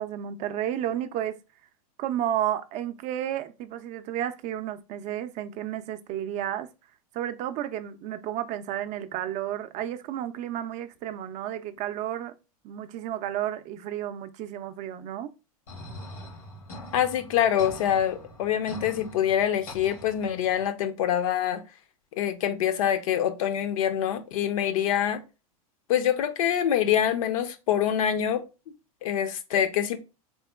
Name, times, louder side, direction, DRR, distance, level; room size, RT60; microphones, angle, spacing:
voice 1, 0.0-1.4 2.0-6.7 7.1-12.3 12.6-15.3, right 11 dB, 40° right, 0.4 m, -32 dB
sound 1, 15.7-20.7, left 1 dB, 90° left, 1.2 m, -43 dB
voice 2, 16.9-21.6 22.2-25.2 25.9-28.4 29.0-30.0, left 10 dB, 65° left, 0.5 m, -25 dB
3.5 x 2.9 x 2.2 m
hypercardioid pair, 100°, 19 cm